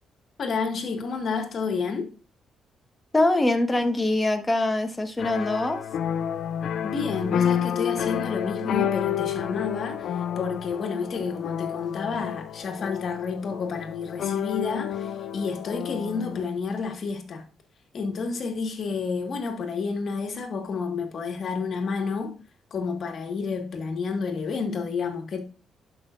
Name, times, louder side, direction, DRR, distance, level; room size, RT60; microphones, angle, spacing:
voice 1, 0.4-2.1 6.8-17.4 17.9-22.4 22.7-25.4, left 5 dB, 55° left, 1.7 m, -30 dB
voice 2, 3.1-5.8, left 2 dB, 15° left, 1.4 m, -23 dB
sound 1, 5.2-16.4, left 9 dB, 70° left, 0.4 m, -30 dB
11.5 x 5.6 x 2.6 m
cardioid pair, 90°, 0 cm